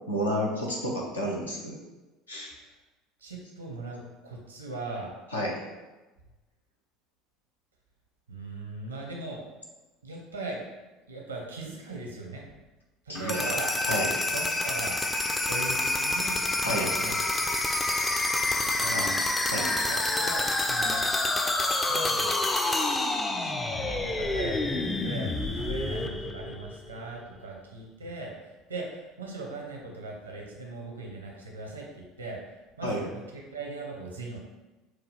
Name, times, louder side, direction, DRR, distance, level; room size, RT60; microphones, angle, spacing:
voice 1, 0.1-1.8 2.3-2.5 5.3-5.5 13.1-13.5 13.9-14.1 16.6-16.9 18.9-19.1 19.5-19.8 32.8-33.0, equal, 85° left, -3 dB, 0.8 m, -30 dB
voice 2, 3.2-5.1 8.3-9.4 10.0-10.6 11.1-12.6 13.0-13.7 14.3-15.0 15.5-17.5 18.6-19.2 19.9-21.1 21.9-22.3 23.3-34.4, right 3 dB, 85° right, -1 dB, 0.8 m, -39 dB
sound 1, 13.1-27.0, left 2 dB, 15° left, 0.4 m, -28 dB
6.0 x 2.3 x 3.3 m, 1.1 s
figure-of-eight pair, 70°, 0 cm